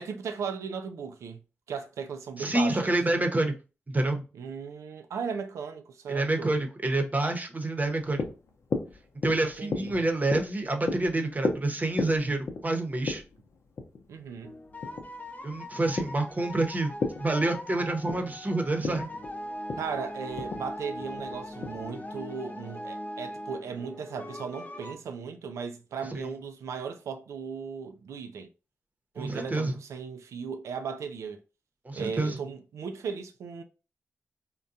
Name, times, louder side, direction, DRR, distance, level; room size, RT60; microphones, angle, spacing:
voice 1, 0.0-1.4 1.7-2.9 4.3-6.6 9.4-10.0 14.1-14.6 19.8-28.5 29.2-31.4 31.9-33.6, right 6 dB, 90° right, 0.4 m, -37 dB
voice 2, 2.4-3.5 3.9-4.2 6.1-8.2 9.2-13.2 15.4-16.9 17.2-19.1 26.1-26.3 29.2-29.7 31.8-32.4, right 2 dB, 35° right, 0.8 m, -28 dB
sound 1, 7.8-22.4, left 4 dB, 70° left, 0.6 m, -36 dB
sound 2, 14.4-24.9, left 1 dB, 30° left, 0.7 m, -40 dB
3.6 x 2.2 x 2.6 m
cardioid pair, 45°, 5 cm